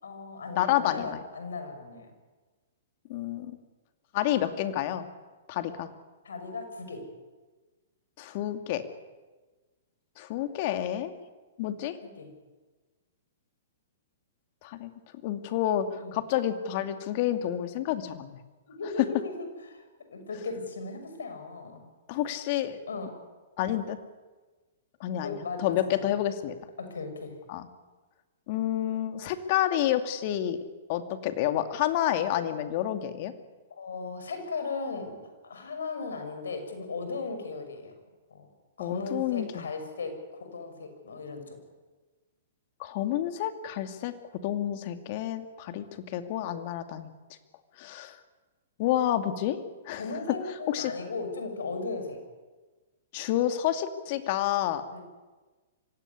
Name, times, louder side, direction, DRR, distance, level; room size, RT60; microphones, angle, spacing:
voice 1, 0.0-2.1 6.2-7.1 12.0-12.3 16.0-16.1 18.7-19.8 20.1-21.8 22.9-23.1 25.1-26.0 26.8-27.4 33.7-35.2 35.4-37.9 38.3-38.5 38.8-41.6 49.9-52.2 54.9-55.0, left 3 dB, 75° left, 6 dB, 6.3 m, -37 dB
voice 2, 0.6-1.2 3.1-3.6 4.1-5.1 5.5-5.9 8.2-8.8 10.2-11.1 11.6-12.0 14.6-14.9 15.2-18.4 19.0-19.1 22.1-22.8 23.6-24.0 25.0-26.6 27.5-27.7 28.5-30.6 30.9-33.3 38.8-39.7 42.8-44.1 44.4-47.1 47.8-48.2 48.8-49.6 49.9-50.0 50.7-50.9 53.1-54.8, left 12 dB, 50° left, 8 dB, 2.5 m, -29 dB
25.0 x 17.0 x 9.8 m, 1.3 s
hypercardioid pair, 120°, 0 cm